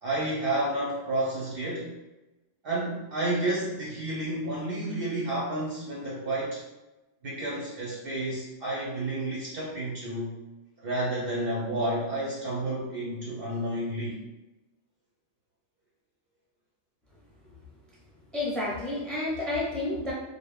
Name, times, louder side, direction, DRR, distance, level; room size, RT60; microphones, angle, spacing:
voice 1, 0.0-1.9 2.6-6.6 7.2-10.3 10.8-14.2, right 1 dB, 60° right, -5 dB, 0.6 m, -30 dB
voice 2, 18.3-20.1, left 2 dB, ahead, -6 dB, 0.6 m, -30 dB
2.5 x 2.0 x 3.2 m, 1.0 s
omnidirectional pair, 1.3 m